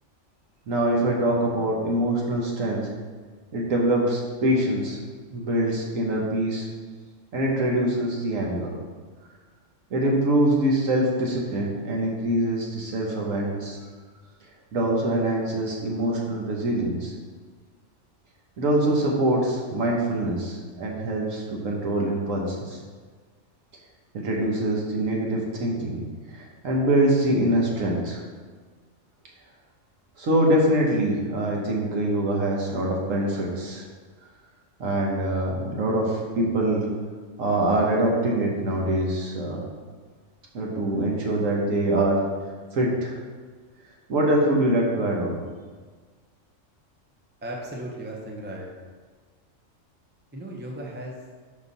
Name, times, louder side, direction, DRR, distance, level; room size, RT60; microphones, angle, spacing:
voice 1, 0.7-2.9 3.5-5.0 5.3-6.7 7.3-8.7 9.9-13.8 14.7-17.1 18.6-22.8 24.1-26.0 26.6-28.2 30.2-33.8 34.8-36.9 37.4-39.6 40.5-42.3 42.7-43.2 44.1-45.4, right 1 dB, 85° right, -1 dB, 1.5 m, -24 dB
voice 2, 47.4-48.7 50.3-51.1, right 1 dB, 10° right, -1 dB, 0.6 m, -36 dB
5.3 x 5.2 x 4.0 m, 1.5 s
omnidirectional pair, 1.3 m